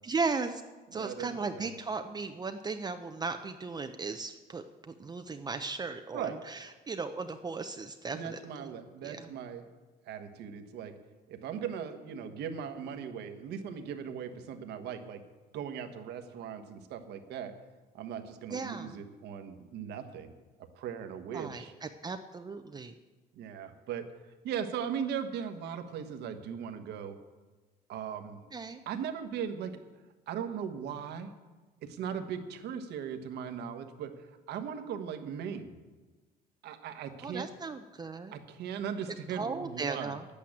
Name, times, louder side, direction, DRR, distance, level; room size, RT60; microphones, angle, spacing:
voice 1, 0.0-0.6 0.9-8.7 9.0-9.3 18.5-19.0 21.3-22.9 28.5-28.8 37.2-38.3 39.3-40.3, right 4 dB, 25° right, 7 dB, 0.6 m, -36 dB
voice 2, 0.9-1.7 6.1-6.4 8.1-9.6 10.1-10.9 11.3-15.2 15.5-17.5 17.9-20.3 20.8-21.7 23.3-24.1 24.4-27.2 27.9-28.4 28.9-29.7 30.3-31.3 31.8-34.1 34.5-35.7 36.6-37.5 38.3-40.1, right 8 dB, 80° right, 7 dB, 1.3 m, -38 dB
10.0 x 8.6 x 8.6 m, 1.3 s
cardioid pair, 110°, 17 cm